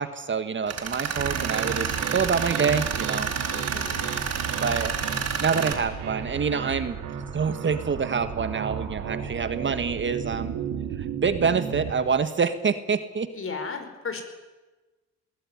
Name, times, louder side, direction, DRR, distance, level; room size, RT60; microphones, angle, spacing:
voice 1, 0.0-3.3 4.5-4.9 5.4-7.0 7.3-10.6 11.0-13.3, right 5 dB, 40° right, 11 dB, 1.6 m, -26 dB
Tools, 0.7-5.7, right 6 dB, 55° right, 4.4 m, -30 dB
sound 1, 1.1-11.9, right 8 dB, 85° right, 3.1 m, -33 dB
voice 2, 3.5-4.0 4.6-4.8 13.3-14.2, left 4 dB, 45° left, 7 dB, 5.1 m, -35 dB
21.5 x 17.5 x 9.9 m, 1.2 s
cardioid pair, 90°, 30 cm